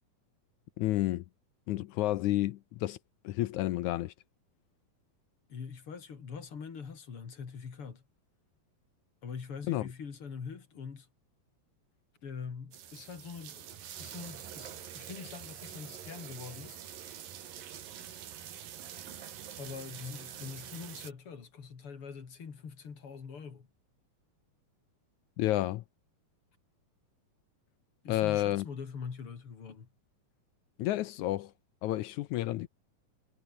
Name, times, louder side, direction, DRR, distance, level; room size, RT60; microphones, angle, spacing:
voice 1, 0.8-1.3 1.7-3.0 3.2-4.1 9.7-9.9 25.4-25.8 28.1-28.7 30.8-31.5 31.8-32.7, left 15 dB, 75° left, 1.8 m, -30 dB
voice 2, 5.5-8.0 9.2-11.1 12.2-13.7 14.0-16.8 19.6-23.7 28.0-29.9, left 6 dB, 40° left, 3.3 m, -43 dB
sound 1, 12.7-21.1, right 10 dB, 75° right, 3.8 m, -46 dB
omnidirectional pair, 4.1 m